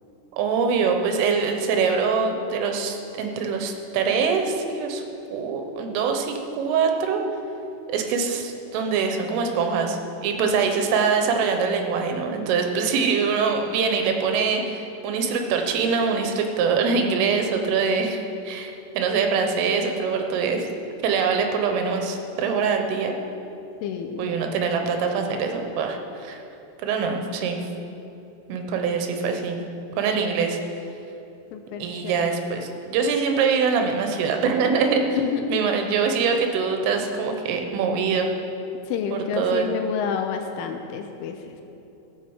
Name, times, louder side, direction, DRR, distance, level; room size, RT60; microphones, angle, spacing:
voice 1, 0.3-5.0 5.3-7.2 7.9-20.7 21.0-23.2 24.2-26.4 26.8-27.6 28.5-29.6 30.0-30.6 31.8-35.2 35.5-38.3 39.1-39.7, right 5 dB, 80° right, 4 dB, 3.5 m, -24 dB
voice 2, 23.8-24.3 31.5-32.2 35.1-35.6 38.9-41.4, left 7 dB, 85° left, 5 dB, 3.0 m, -29 dB
16.5 x 7.2 x 7.1 m, 2.9 s
omnidirectional pair, 6.0 m